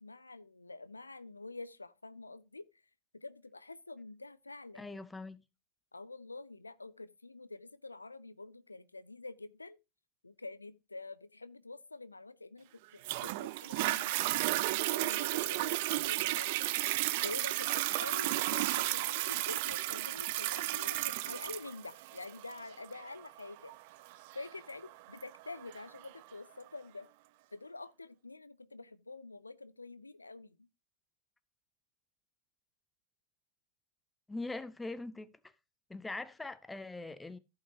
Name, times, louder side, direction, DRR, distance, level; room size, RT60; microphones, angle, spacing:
voice 1, 0.0-2.7 3.1-5.0 5.9-9.8 10.2-16.7 17.2-23.7 24.3-27.1 27.5-30.6, left 3 dB, 90° left, 0.3 m, -47 dB
voice 2, 4.8-5.4 34.3-35.5 35.9-37.4, left 2 dB, 10° left, 0.7 m, -42 dB
Toilet flush, 13.0-26.1 26.7-26.8, right 18 dB, 55° right, 0.5 m, -33 dB
15.0 x 5.5 x 2.8 m
figure-of-eight pair, 85°, 0 cm